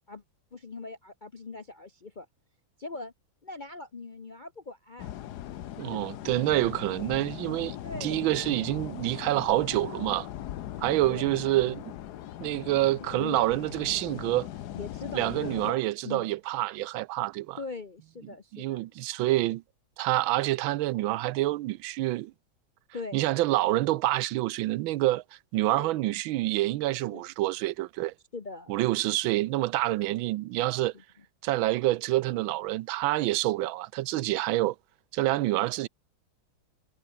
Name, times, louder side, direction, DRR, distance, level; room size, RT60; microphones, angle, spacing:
voice 1, 0.5-2.3 2.8-3.1 3.4-5.1 5.9-6.0 7.8-8.2 11.0-11.3 12.8-13.5 14.7-16.3 17.6-18.8 22.9-23.2 25.8-25.9 27.1-27.2 28.3-28.8 30.9-31.0, left 3 dB, 45° left, 0.6 m, -41 dB
sound 1, 5.0-15.7, left 12 dB, 65° left, 1.2 m, -40 dB
voice 2, 5.8-7.8 8.0-10.3 10.8-11.9 12.4-14.5 15.1-17.6 18.5-19.6 20.0-22.3 23.1-25.2 25.5-28.1 28.7-30.9 31.4-34.7 35.1-35.9, right 16 dB, 85° right, 1.4 m, -27 dB
omnidirectional pair, 2.2 m